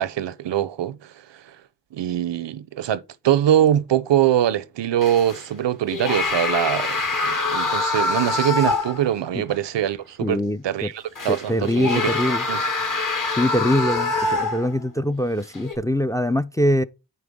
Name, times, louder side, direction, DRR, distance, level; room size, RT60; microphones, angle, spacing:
voice 1, 0.0-1.4 1.9-12.2 12.5-12.6, right 11 dB, 85° right, 0.6 m, -23 dB
sound 1, 5.0-5.4 5.9-9.1 9.5-9.6 11.1-14.8 15.5-15.7, left 3 dB, 50° left, 1.7 m, -25 dB
voice 2, 10.2-10.9 11.3-12.5 13.4-16.8, left 1 dB, 10° left, 0.3 m, -23 dB
9.9 x 4.2 x 3.5 m
cardioid pair, 50°, 42 cm